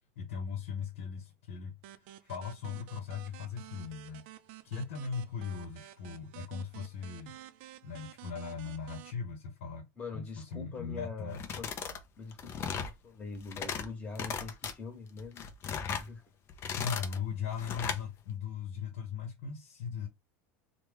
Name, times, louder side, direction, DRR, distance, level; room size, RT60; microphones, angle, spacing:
voice 1, 0.2-4.2 4.6-7.4 7.8-9.9 10.1-11.4 12.7-12.8 16.8-20.1, left 6 dB, 85° left, 0.9 m, -39 dB
sound 1, 1.8-9.1, right 14 dB, 70° right, 0.4 m, -51 dB
voice 2, 10.0-11.7 12.2-15.5 15.9-16.3, left 4 dB, 20° left, 1.3 m, -43 dB
sound 2, 11.3-12.0 12.3-12.9 13.4-13.9 14.1-14.7 15.2-16.1 16.5-17.2 17.6-18.0, left 7 dB, 35° left, 0.6 m, -37 dB
3.1 x 2.2 x 3.4 m
supercardioid pair, 130°, 7 cm